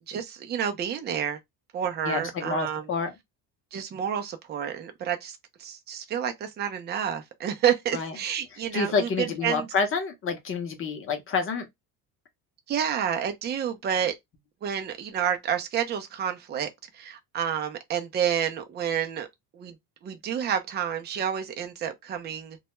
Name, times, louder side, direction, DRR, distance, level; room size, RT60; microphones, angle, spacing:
voice 1, 0.1-1.4 1.7-2.9 3.7-9.7 12.7-14.1 14.6-16.7 16.9-19.3 19.5-19.8 20.0-22.6, right 9 dB, 25° right, 0.4 m, -29 dB
voice 2, 2.0-3.1 7.9-8.1 8.7-11.7, left 4 dB, 30° left, 0.7 m, -28 dB
2.2 x 2.0 x 2.9 m
cardioid pair, 140°, 41 cm